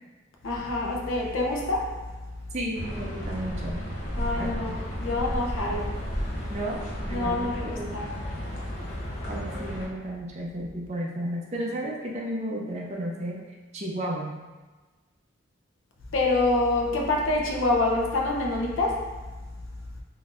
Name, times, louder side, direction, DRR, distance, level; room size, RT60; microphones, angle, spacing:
voice 1, 0.4-2.0 4.1-6.1 7.1-8.1 16.1-19.2, left 2 dB, 80° left, 0 dB, 0.6 m, -26 dB
voice 2, 2.5-3.9 4.4-4.8 6.5-8.0 9.3-13.4 13.7-14.3, right 1 dB, 35° right, -2 dB, 0.5 m, -33 dB
sound 1, 2.7-9.9, equal, 35° left, 0.7 m, -33 dB
3.8 x 2.6 x 2.4 m, 1.3 s
head